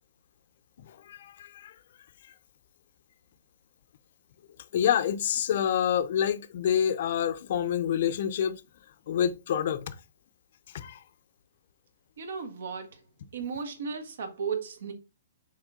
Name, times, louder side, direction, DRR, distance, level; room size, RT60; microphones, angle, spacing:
voice 1, 0.9-1.7 4.7-8.6 9.1-10.0 10.7-11.0, left 9 dB, 45° left, 0.6 m, -27 dB
voice 2, 12.2-13.1 13.3-14.9, right 6 dB, 70° right, 1.6 m, -35 dB
6.3 x 4.2 x 3.7 m
hypercardioid pair, 170°, 0 cm